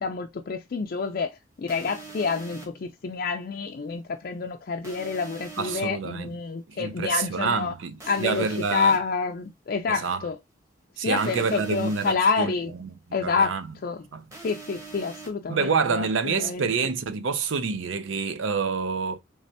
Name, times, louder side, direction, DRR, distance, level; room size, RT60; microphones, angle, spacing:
voice 1, 0.0-7.7 8.1-10.4 11.0-12.7 13.1-14.0 14.4-16.7, left 5 dB, 50° left, 0.4 m, -28 dB
sound 1, 1.7-2.7 4.8-5.8 8.0-9.0 11.2-12.1 14.3-15.3, right 4 dB, 15° right, 1.1 m, -42 dB
voice 2, 5.6-6.3 6.7-9.0 9.9-10.2 11.0-12.5 13.2-13.6 14.1-14.2 15.5-19.2, right 5 dB, 80° right, 0.5 m, -27 dB
3.3 x 3.2 x 2.7 m
head